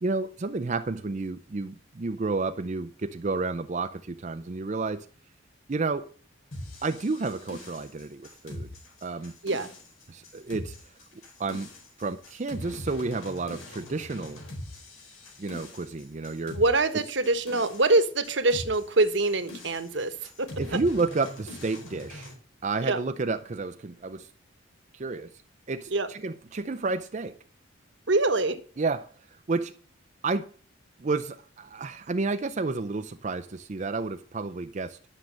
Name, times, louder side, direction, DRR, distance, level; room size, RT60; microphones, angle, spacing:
voice 1, 0.0-5.1 5.7-6.1 6.8-8.7 9.0-9.3 10.1-10.7 11.4-11.7 12.0-14.4 15.4-16.6 20.6-22.3 22.6-24.3 24.9-25.3 25.7-27.4 28.8-29.7 30.2-30.5 31.0-35.0, right 3 dB, 35° right, 0.5 m, -31 dB
sound 1, 6.5-22.3, left 1 dB, 85° left, 4.3 m, -42 dB
voice 2, 16.5-20.8 22.8-23.0 25.9-26.1 28.1-28.6, right 2 dB, 60° right, 1.3 m, -25 dB
11.5 x 6.5 x 7.4 m
head